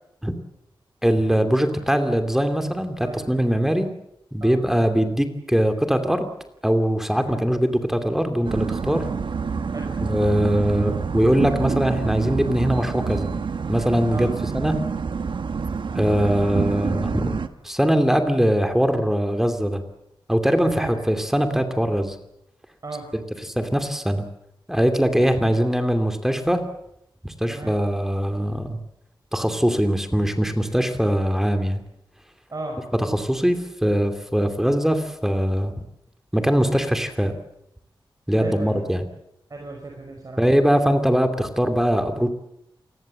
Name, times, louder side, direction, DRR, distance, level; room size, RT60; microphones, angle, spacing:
voice 1, 1.0-3.9 4.3-6.3 6.6-9.0 10.0-13.3 13.7-14.3 14.5-14.7 15.9-17.3 17.6-19.8 20.3-22.2 23.1-24.2 24.7-26.6 27.2-28.8 29.3-31.8 32.9-35.7 36.3-37.3 38.3-39.0 40.4-42.3, equal, 5° right, 7 dB, 2.7 m, -21 dB
sound 1, 8.4-17.5, right 5 dB, 70° right, 1.4 m, -27 dB
voice 2, 22.8-23.1 27.5-27.8 32.5-32.9 38.3-38.8 39.5-40.5, right 2 dB, 45° right, 2 dB, 5.0 m, -35 dB
28.0 x 20.5 x 7.8 m, 0.79 s
wide cardioid pair, 115°, 9 cm